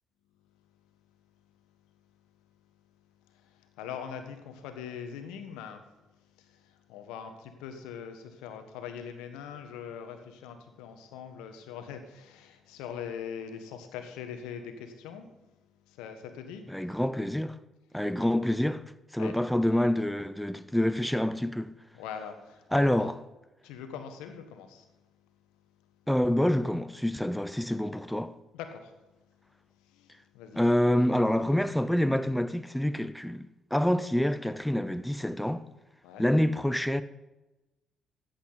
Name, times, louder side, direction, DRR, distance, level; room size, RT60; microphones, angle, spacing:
voice 1, 3.3-5.8 6.4-15.3 15.9-16.7 19.2-19.4 21.9-23.1 23.6-24.9 28.5-28.9 29.8-30.6 36.0-36.3, left 7 dB, 80° left, 1.3 m, -42 dB
voice 2, 16.7-17.6 17.9-18.8 19.1-21.7 22.7-23.1 26.1-28.3 30.5-33.4 33.7-35.6 36.2-37.0, left 1 dB, 5° left, 0.6 m, -27 dB
14.0 x 8.7 x 4.0 m
hypercardioid pair, 50°, 0 cm